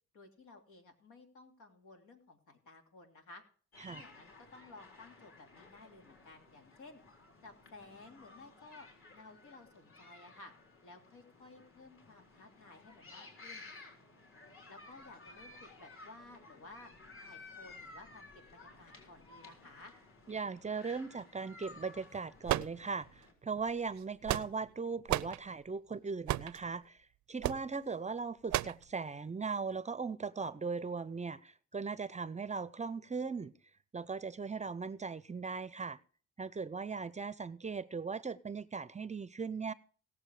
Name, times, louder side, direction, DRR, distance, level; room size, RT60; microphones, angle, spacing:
voice 1, 0.1-3.4 3.8-7.0 7.4-8.9 9.1-10.5 10.8-13.6 14.7-16.9 17.2-19.9, left 3 dB, 80° left, 4 dB, 3.2 m, -55 dB
sound 1, 3.7-23.3, left 3 dB, 45° left, 4.1 m, -55 dB
voice 2, 20.3-33.5 33.9-36.0 36.4-39.7, right 5 dB, 25° right, 18 dB, 0.6 m, -39 dB
sound 2, 22.5-23.2 24.0-24.7 25.1-25.4 26.3-26.6 27.4-27.7 28.5-28.8, right 16 dB, 70° right, 0.5 m, -33 dB
18.5 x 7.3 x 4.8 m, 0.42 s
cardioid pair, 90°, 30 cm